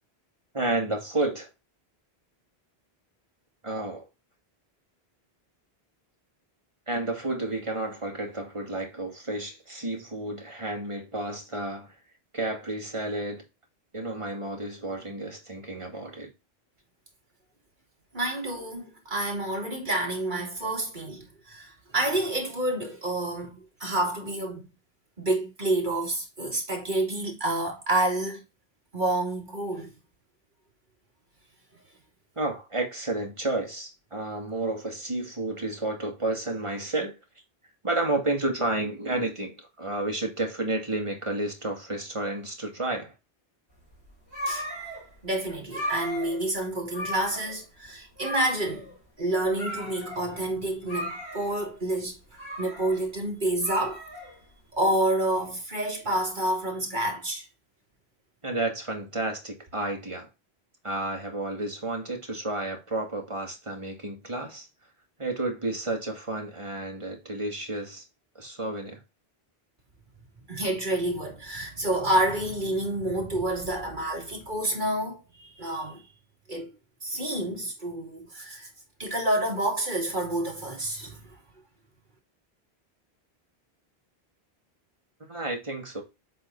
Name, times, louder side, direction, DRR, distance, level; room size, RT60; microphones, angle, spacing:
voice 1, 0.5-1.5 3.6-4.1 6.9-12.0 12.3-13.4 13.9-16.3 32.4-37.2 37.8-43.1 58.4-60.3 60.8-64.7 65.2-68.0 68.4-69.0 85.3-86.0, right 2 dB, 30° right, 2.2 m, -31 dB
voice 2, 18.1-24.7 25.2-28.4 28.9-29.9 44.5-44.7 45.2-48.9 49.2-54.0 54.7-57.5 70.5-76.0 76.5-76.7 77.0-78.7 79.0-81.2, right 1 dB, 50° right, 2.8 m, -28 dB
sound 1, 43.8-54.8, equal, 75° left, 3.4 m, -37 dB
7.7 x 4.0 x 4.0 m
omnidirectional pair, 1.1 m